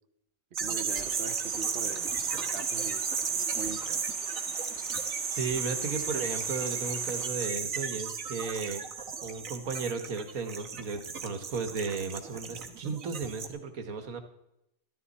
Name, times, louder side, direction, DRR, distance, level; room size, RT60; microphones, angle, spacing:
sound 1, 0.5-13.5, right 6 dB, 70° right, 1.7 m, -34 dB
voice 1, 0.6-4.0, right 5 dB, 50° right, 8 dB, 1.0 m, -42 dB
sound 2, 0.9-7.3, left 6 dB, 60° left, 1.2 m, -49 dB
voice 2, 5.3-8.8 9.2-14.2, right 4 dB, 85° right, 7 dB, 1.8 m, -35 dB
13.0 x 13.0 x 4.2 m, 0.82 s
omnidirectional pair, 1.5 m